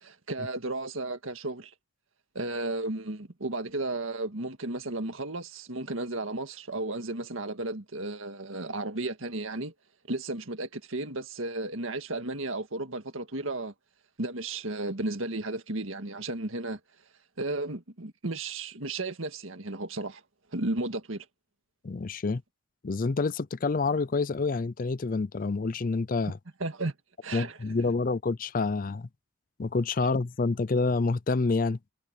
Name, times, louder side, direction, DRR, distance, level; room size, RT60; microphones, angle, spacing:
voice 1, 0.0-1.7 2.4-9.7 10.1-13.7 14.2-16.8 17.4-20.2 20.5-21.3 26.6-26.9 27.2-27.6, right 2 dB, 75° right, 1.9 m, -34 dB
voice 2, 21.8-22.4 22.8-26.4 27.3-29.1 29.6-31.8, left 3 dB, 40° left, 0.5 m, -28 dB
head